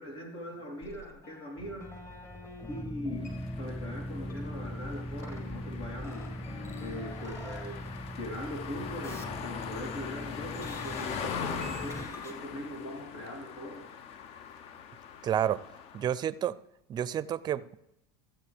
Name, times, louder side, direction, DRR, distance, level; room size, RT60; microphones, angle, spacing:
voice 1, 0.0-1.9 2.7-3.3 3.6-6.2 6.8-7.8 8.2-13.8, left 1 dB, 80° left, 3.6 m, -41 dB
sound 1, 0.8-2.8 3.1-3.8 4.2-8.7 9.0-10.2 10.5-12.3, left 2 dB, 20° left, 1.5 m, -49 dB
sound 2, 1.6-12.1, equal, ahead, 0.7 m, -41 dB
sound 3, 3.2-16.2, left 7 dB, 55° left, 0.7 m, -42 dB
voice 2, 15.2-15.6 15.9-16.6 16.9-17.8, right 10 dB, 35° right, 0.4 m, -30 dB
15.0 x 7.4 x 3.4 m
supercardioid pair, 105°, 13 cm